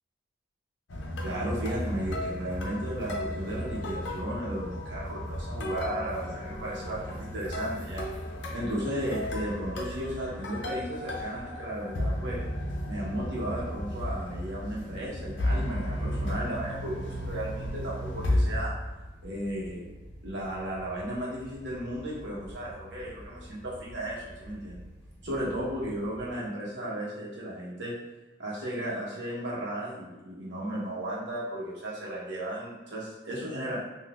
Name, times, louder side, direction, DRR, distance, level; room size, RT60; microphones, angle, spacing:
sound 1, 0.9-18.6, left 1 dB, 75° left, 0.6 m, -33 dB
voice 1, 1.2-8.0 8.5-12.5 12.8-18.7 19.2-19.8 20.2-24.8 25.2-27.9 28.4-33.8, right 1 dB, 70° right, -5 dB, 1.1 m, -35 dB
sound 2, 12.4-26.3, equal, 25° left, 1.1 m, -49 dB
3.8 x 2.5 x 2.4 m, 1.1 s
head